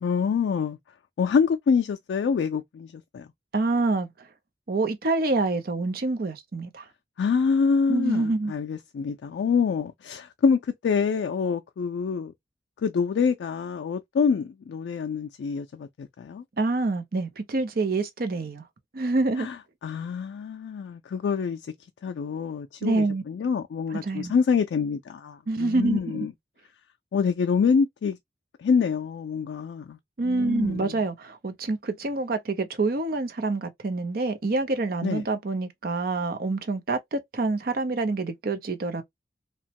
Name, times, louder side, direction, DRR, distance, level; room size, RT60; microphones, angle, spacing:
voice 1, 0.0-0.8 1.2-3.3 7.2-12.3 12.8-16.4 19.4-19.6 19.8-21.7 22.0-26.3 27.1-28.2 28.6-30.0 30.2-31.0 35.0-35.2, left 6 dB, 75° left, 0.3 m, -26 dB
voice 2, 3.5-4.1 4.7-6.8 7.9-8.5 16.6-18.6 18.9-19.5 22.8-23.2 23.9-24.3 25.5-26.3 30.2-39.0, right 3 dB, 55° right, 0.6 m, -26 dB
2.9 x 2.1 x 2.8 m
head